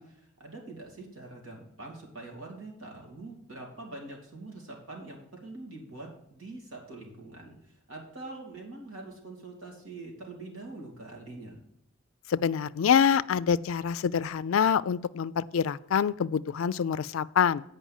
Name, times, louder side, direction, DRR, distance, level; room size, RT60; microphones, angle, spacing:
voice 1, 0.0-7.6 7.9-11.6, right 2 dB, 80° right, 0 dB, 2.8 m, -44 dB
voice 2, 12.3-17.6, left 7 dB, 75° left, 16 dB, 0.4 m, -26 dB
8.4 x 5.4 x 7.2 m, 0.79 s
head